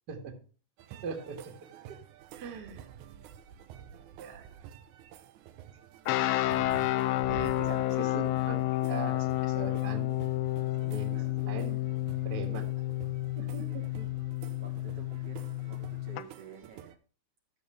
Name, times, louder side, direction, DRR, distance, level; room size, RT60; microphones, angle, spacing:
sound 1, 0.8-17.0, right 10 dB, 80° right, 2.1 m, -49 dB
voice 1, 1.0-1.5 1.9-2.0 2.3-2.9 4.2-4.5 7.3-10.2 10.9-11.8 12.2-12.7 13.4-14.1, right 5 dB, 40° right, 3 dB, 2.0 m, -41 dB
sound 2, 6.1-16.2, left 16 dB, 80° left, 1.5 m, -30 dB
voice 2, 7.3-7.9 10.8-11.3 13.6-13.9 14.6-17.0, right 6 dB, 55° right, 1 dB, 2.5 m, -51 dB
14.0 x 7.1 x 3.3 m, 0.39 s
omnidirectional pair, 3.5 m